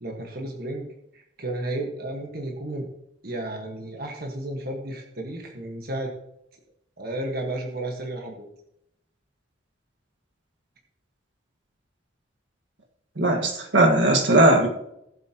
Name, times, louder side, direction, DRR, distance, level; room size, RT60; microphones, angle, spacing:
voice 1, 0.0-0.9 1.1-2.9 3.2-6.1 7.0-8.5, right 1 dB, 50° right, 1 dB, 1.5 m, -32 dB
voice 2, 13.2-14.7, right 1 dB, 75° right, 1 dB, 1.7 m, -18 dB
18.5 x 7.6 x 3.0 m, 0.81 s
head